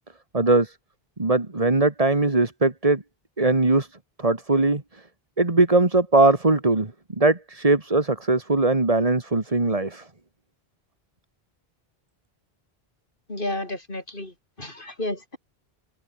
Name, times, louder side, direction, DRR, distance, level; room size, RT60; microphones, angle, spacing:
voice 1, 0.3-0.8 1.2-3.0 3.4-5.0 5.4-10.1, right 2 dB, 35° right, 2.2 m, -21 dB
voice 2, 13.3-14.3 14.6-15.4, left 1 dB, 60° left, 5.2 m, -31 dB
omnidirectional pair, 1.0 m